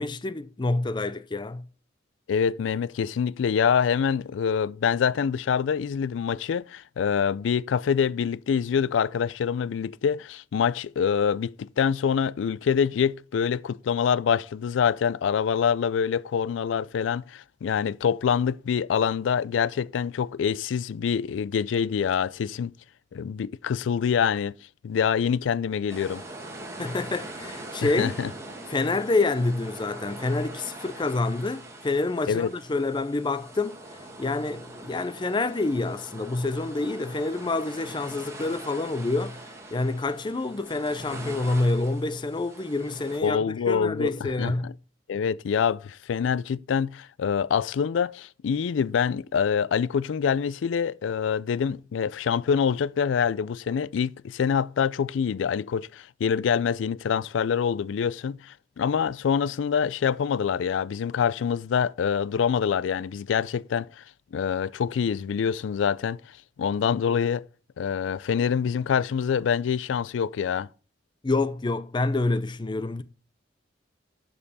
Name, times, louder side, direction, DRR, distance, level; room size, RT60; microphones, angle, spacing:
voice 1, 0.0-1.6 26.8-28.2 28.7-44.7 71.2-73.0, left 2 dB, 25° left, 0.5 m, -27 dB
voice 2, 2.3-22.7 23.1-24.5 24.8-26.2 27.8-28.3 32.3-32.5 43.2-44.7 45.1-64.0 64.3-66.2 66.6-67.5 67.8-70.7, left 7 dB, 85° left, 0.3 m, -25 dB
sound 1, 25.9-43.2, right 2 dB, 15° right, 1.7 m, -42 dB
11.0 x 5.5 x 4.1 m
head